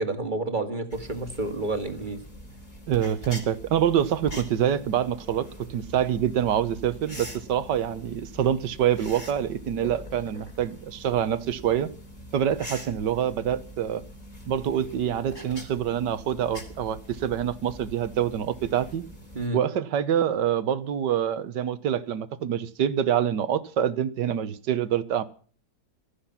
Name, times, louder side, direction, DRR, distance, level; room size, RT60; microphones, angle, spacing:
voice 1, 0.0-2.2 19.3-19.6, right 2 dB, 25° right, 2.0 m, -29 dB
sound 1, 0.9-19.5, equal, 25° left, 3.8 m, -43 dB
voice 2, 2.9-11.9 12.3-14.0 14.5-19.0 19.5-25.2, right 9 dB, 70° right, 1.7 m, -26 dB
16.0 x 13.5 x 5.8 m
omnidirectional pair, 2.0 m